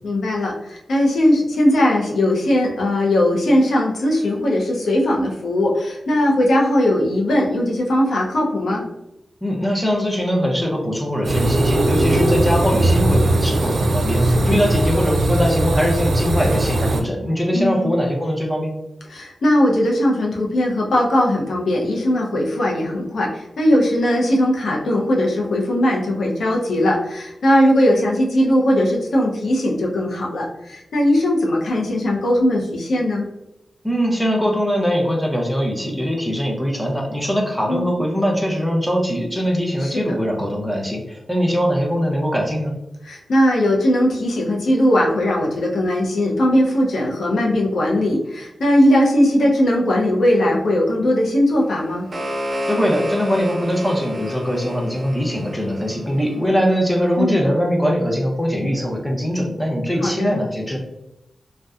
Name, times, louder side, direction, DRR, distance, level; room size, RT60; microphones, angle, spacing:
voice 1, 0.0-8.8 14.2-14.6 17.5-17.9 19.1-33.3 37.7-38.0 39.8-40.2 43.0-52.1 57.2-57.5 60.0-60.5, left 1 dB, 85° left, -2 dB, 0.5 m, -19 dB
voice 2, 9.4-18.7 33.8-42.7 52.7-60.8, equal, ahead, -1 dB, 0.6 m, -21 dB
sound 1, 11.2-17.0, right 1 dB, 75° right, 0.4 m, -19 dB
sound 2, 51.7-56.8, equal, 45° right, 0.8 m, -30 dB
2.7 x 2.1 x 2.3 m, 0.89 s
wide cardioid pair, 80°, 0 cm